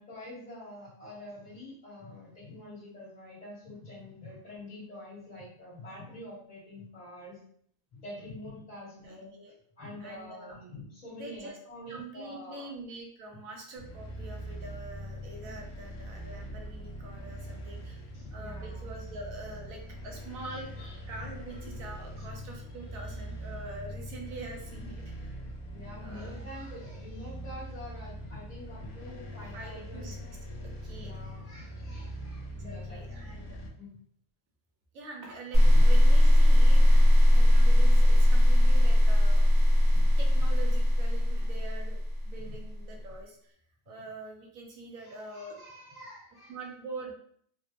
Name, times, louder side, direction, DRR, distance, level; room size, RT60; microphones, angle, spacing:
voice 1, 0.0-7.4 7.9-9.3 9.8-12.7 13.3-13.4 18.1-18.9 20.8-21.3 22.2-22.3 25.7-30.1 31.0-33.9 35.6-35.9 36.9-37.1 37.8-37.9 39.9-40.1 41.3-41.5 42.4-42.5 45.0-46.5, left 1 dB, 35° left, -11 dB, 1.4 m, -46 dB
voice 2, 9.0-9.5 10.0-10.6 11.1-11.6 11.9-18.0 18.3-20.7 21.1-25.3 26.0-26.3 29.5-30.1 30.6-31.2 32.5-33.6 34.9-37.0 37.3-39.4 40.2-42.0 42.2-43.5 43.9-45.6 46.5-47.1, right 2 dB, 75° right, 1 dB, 1.1 m, -44 dB
sound 1, 13.8-33.7, equal, 75° left, 0.9 m, -42 dB
sound 2, 35.5-42.7, left 1 dB, 30° right, 1.0 m, -20 dB
3.4 x 2.1 x 2.8 m, 0.63 s
omnidirectional pair, 1.4 m